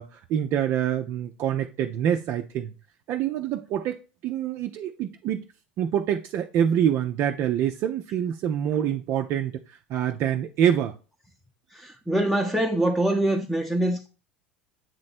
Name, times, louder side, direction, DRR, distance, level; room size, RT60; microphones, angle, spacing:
voice 1, 0.0-2.7 3.1-5.4 5.8-10.9, right 9 dB, 50° right, 0.5 m, -26 dB
voice 2, 12.1-14.1, right 1 dB, ahead, 0.8 m, -23 dB
8.1 x 3.2 x 4.2 m
hypercardioid pair, 80°, 6 cm